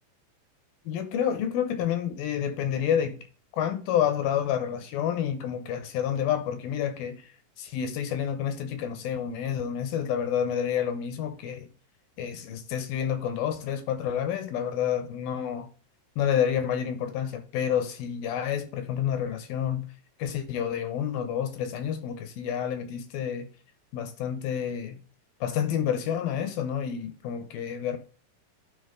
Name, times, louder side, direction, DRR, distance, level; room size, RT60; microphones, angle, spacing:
voice 1, 0.9-3.2 3.5-7.3 7.6-11.7 12.2-15.7 16.2-19.9 20.2-23.5 23.9-25.0 25.4-28.0, left 9 dB, 75° left, 2.3 m, -29 dB
12.0 x 4.3 x 3.6 m
omnidirectional pair, 5.0 m